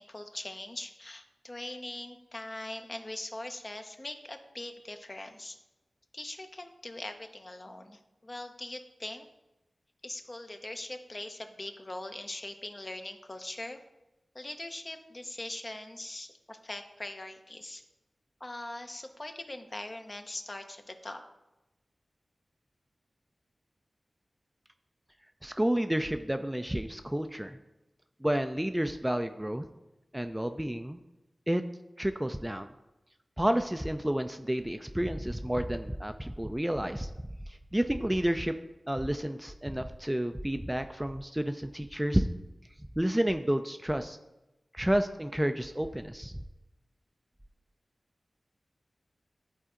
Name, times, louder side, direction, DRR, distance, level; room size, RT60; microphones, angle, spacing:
voice 1, 0.0-5.6 6.1-9.3 10.0-13.8 14.3-17.8 18.4-21.2, left 1 dB, 40° left, 6 dB, 0.8 m, -41 dB
voice 2, 25.4-27.6 28.2-29.6 30.1-31.0 31.5-31.6 32.0-32.7 33.4-37.1 37.7-38.6 38.9-42.3 43.0-44.2 44.7-46.3, right 1 dB, 10° right, 8 dB, 0.4 m, -30 dB
11.0 x 4.2 x 3.7 m, 0.99 s
cardioid pair, 45°, 0 cm